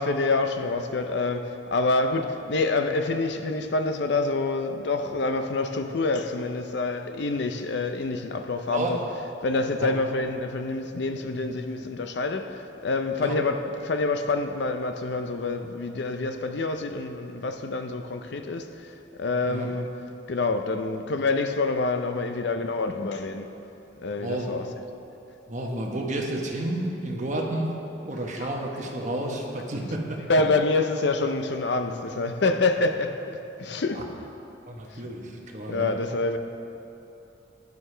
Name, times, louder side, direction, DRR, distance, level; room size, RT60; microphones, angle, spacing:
voice 1, 0.0-19.9 20.3-23.5 24.0-24.8 28.4-28.6 30.2-34.1 34.9-35.0 35.7-36.4, left 3 dB, 60° left, 0.6 m, -27 dB
voice 2, 25.5-27.8 28.0-30.2 33.9-34.0 34.7-35.9, right 1 dB, 40° right, 1.2 m, -31 dB
12.5 x 9.5 x 3.3 m
head